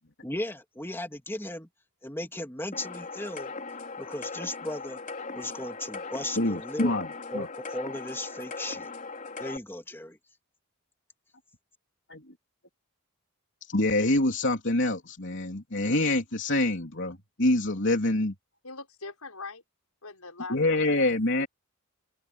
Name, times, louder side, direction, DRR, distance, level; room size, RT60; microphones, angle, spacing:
voice 1, 0.2-1.7 2.0-3.5 4.0-5.0 5.3-7.0 7.3-8.9 9.4-10.2, left 1 dB, 10° left, 2.9 m, -36 dB
sound 1, 2.7-9.6, left 4 dB, 35° left, 5.6 m, -39 dB
voice 2, 6.4-7.1 7.3-7.5 12.1-12.2 13.7-18.3 20.5-21.5, left 2 dB, 55° left, 3.5 m, -26 dB
voice 3, 18.6-19.6 20.0-21.2, left 3 dB, 85° left, 6.6 m, -42 dB
head